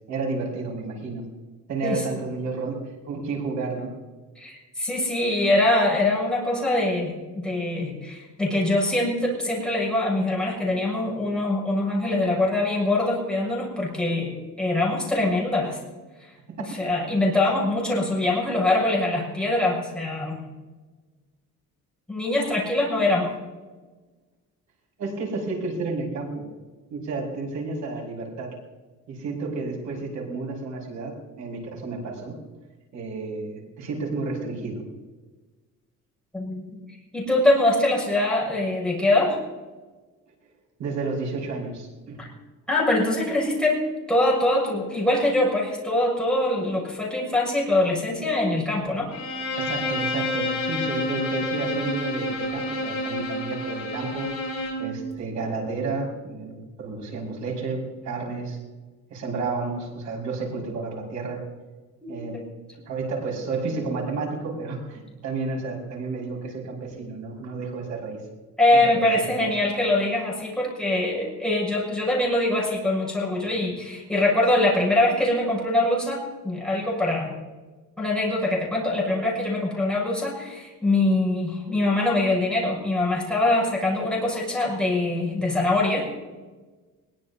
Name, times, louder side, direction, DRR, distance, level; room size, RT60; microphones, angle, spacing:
voice 1, 0.1-1.3 1.7-3.9 16.5-16.8 25.0-26.5 26.9-28.6 29.1-32.3 32.9-34.8 40.8-42.3 49.6-54.3 54.8-58.6 59.1-61.4 62.1-62.4 62.9-68.2 68.8-69.1 69.4-69.5, right 3 dB, 60° right, -1 dB, 5.8 m, -31 dB
voice 2, 4.3-15.8 16.2-16.3 16.7-20.4 22.1-23.3 36.3-36.6 37.1-39.4 42.2-42.3 42.7-49.1 62.0-62.5 68.6-77.3 78.0-86.1, left 2 dB, 5° left, -5 dB, 6.3 m, -23 dB
Bowed string instrument, 49.1-54.9, left 2 dB, 45° left, 6.8 m, -29 dB
22.0 x 21.5 x 2.8 m, 1.3 s
cardioid pair, 165°, 32 cm